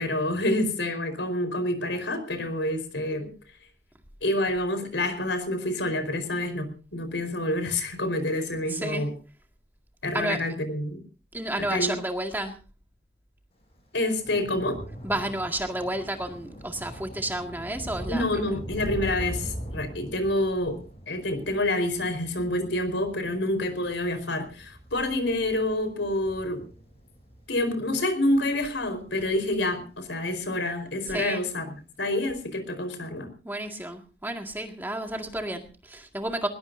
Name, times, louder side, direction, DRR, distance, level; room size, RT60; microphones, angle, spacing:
voice 1, 0.0-3.3 4.2-9.1 10.0-11.0 11.7-11.9 13.9-14.8 18.1-20.8 21.1-26.6 27.5-31.6 32.0-33.3, left 1 dB, 80° left, 9 dB, 4.6 m, -27 dB
voice 2, 8.5-9.1 10.1-10.4 11.3-12.6 15.0-18.6 31.0-31.4 33.4-36.5, right 1 dB, 10° right, 3 dB, 2.0 m, -31 dB
Thunder / Rain, 13.6-30.2 30.5-31.0 31.3-31.4, equal, 35° left, 5.6 m, -41 dB
20.5 x 20.5 x 2.7 m, 0.36 s
head